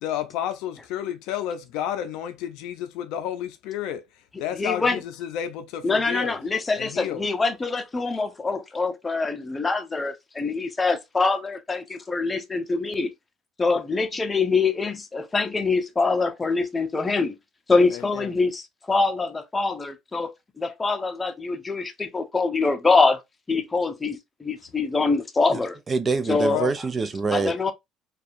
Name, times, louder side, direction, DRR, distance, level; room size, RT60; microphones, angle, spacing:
voice 1, 0.0-4.0 4.4-6.3 6.8-7.3 17.9-18.3 26.3-26.7, left 10 dB, 80° left, 0.4 m, -31 dB
voice 2, 4.5-5.0 5.8-13.1 13.6-17.3 17.7-20.3 20.6-23.2 23.5-25.8 26.3-26.7 27.3-27.7, left 3 dB, 20° left, 0.6 m, -24 dB
voice 3, 25.9-27.7, right 4 dB, 30° right, 0.3 m, -25 dB
2.6 x 2.3 x 2.4 m
supercardioid pair, 90°, 0 cm